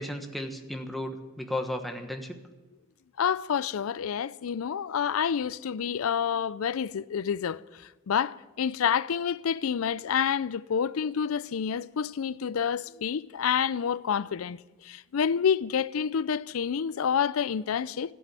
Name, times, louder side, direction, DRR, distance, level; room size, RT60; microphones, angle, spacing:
voice 1, 0.0-2.4, left 1 dB, ahead, 1.3 m, -34 dB
voice 2, 3.2-18.1, left 7 dB, 85° left, 0.4 m, -28 dB
14.0 x 8.5 x 9.0 m
head